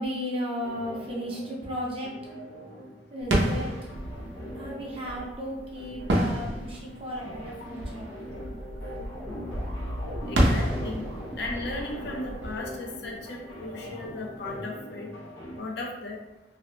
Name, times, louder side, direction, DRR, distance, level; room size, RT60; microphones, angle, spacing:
voice 1, 0.0-2.1 3.1-3.7 4.5-8.2, equal, 30° right, -4 dB, 0.6 m, -34 dB
sound 1, 0.6-15.6, equal, 85° left, 0.8 m, -43 dB
sound 2, 3.2-13.8, right 1 dB, 80° right, 0.6 m, -31 dB
sound 3, 9.1-12.2, equal, 15° left, 0.6 m, -41 dB
voice 2, 10.3-11.0 11.4-15.1 15.6-16.2, left 2 dB, 65° left, 0 dB, 0.5 m, -36 dB
2.7 x 2.0 x 2.8 m, 1.0 s
head